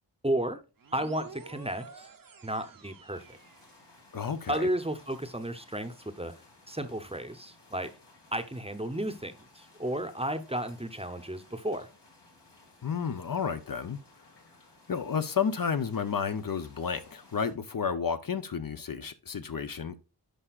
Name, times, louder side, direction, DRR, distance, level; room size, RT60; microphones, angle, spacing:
voice 1, 0.2-0.6 0.9-2.1 2.4-3.4 4.5-6.3 6.7-7.9 8.3-11.9, right 1 dB, 15° right, 0.7 m, -33 dB
sound 1, 0.8-4.3, right 5 dB, 50° right, 0.7 m, -50 dB
sound 2, 3.1-17.5, left 2 dB, 75° left, 2.1 m, -58 dB
voice 2, 4.1-4.7 12.8-14.0 14.9-20.0, left 6 dB, 55° left, 0.6 m, -31 dB
10.0 x 4.9 x 2.4 m
wide cardioid pair, 55°, 42 cm